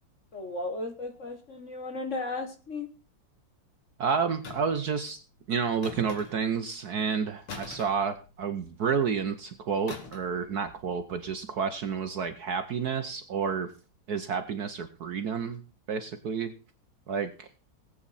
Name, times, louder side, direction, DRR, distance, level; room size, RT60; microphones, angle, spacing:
voice 1, 0.3-2.9, left 2 dB, 40° left, 6 dB, 1.3 m, -35 dB
voice 2, 4.0-5.2 5.5-13.7 14.1-15.6 15.9-16.5 17.1-17.5, right 6 dB, 60° right, 9 dB, 1.1 m, -30 dB
sound 1, 4.4-4.9 5.8-6.6 7.5-8.7 9.9-10.4 10.6-10.9, left 4 dB, 85° left, 3.0 m, -43 dB
18.5 x 8.5 x 4.1 m, 0.35 s
omnidirectional pair, 2.3 m